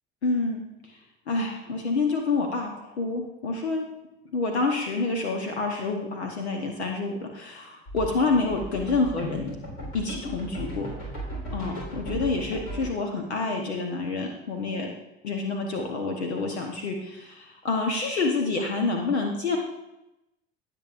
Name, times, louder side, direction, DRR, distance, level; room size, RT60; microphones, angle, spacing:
voice 1, 0.2-0.6 0.9-1.0 1.3-3.8 4.3-9.5 9.9-10.9 11.5-14.9 15.2-19.6, left 3 dB, 90° left, 2 dB, 1.0 m, -28 dB
sound 1, 7.9-12.9, right 1 dB, 75° left, 3.7 m, -36 dB
17.0 x 7.4 x 2.5 m, 0.93 s
hypercardioid pair, 65°, 32 cm